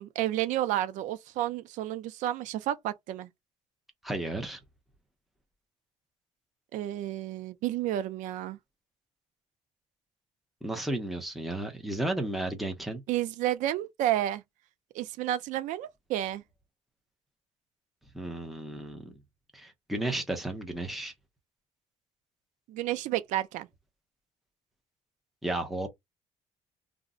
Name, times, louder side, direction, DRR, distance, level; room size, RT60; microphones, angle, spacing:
voice 1, 0.0-3.3 6.7-8.6 13.1-14.4 14.9-16.4 22.7-23.7, right 13 dB, 85° right, 0.4 m, -31 dB
voice 2, 4.0-4.6 10.6-13.0 18.1-19.2 19.5-21.1 25.4-25.9, right 1 dB, ahead, 0.6 m, -33 dB
2.5 x 2.0 x 3.6 m
cardioid pair, 160°, 13 cm